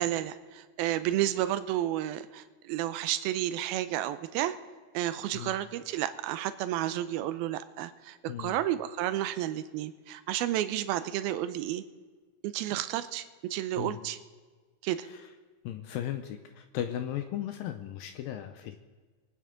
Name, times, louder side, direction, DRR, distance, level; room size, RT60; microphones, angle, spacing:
voice 1, 0.0-4.6 4.9-11.8 12.4-13.3 13.5-14.2 14.8-15.1, right 13 dB, 85° right, 12 dB, 2.4 m, -31 dB
voice 2, 8.3-8.6 13.8-14.0 15.0-15.3 15.6-18.8, left 11 dB, 80° left, 8 dB, 2.1 m, -36 dB
24.5 x 9.1 x 3.8 m, 1.4 s
omnidirectional pair, 4.6 m